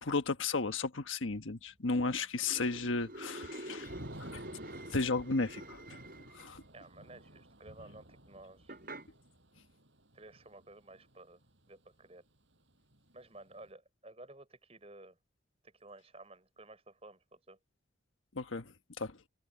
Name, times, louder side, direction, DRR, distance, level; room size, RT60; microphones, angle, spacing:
voice 1, 0.0-3.9 4.2-4.4 4.9-5.8 6.3-6.6 18.3-19.2, left 3 dB, 90° left, 1.4 m, -34 dB
sound 1, 2.4-6.6 8.7-9.1, right 1 dB, 50° right, 4.3 m, -47 dB
Thunder / Rain, 3.8-11.7 12.0-12.1 12.4-13.7, right 1 dB, 70° right, 7.6 m, -53 dB
voice 2, 6.7-8.8 10.1-11.4 11.7-12.2 13.1-15.2 15.6-17.6, right 2 dB, 30° right, 5.6 m, -54 dB
open air
head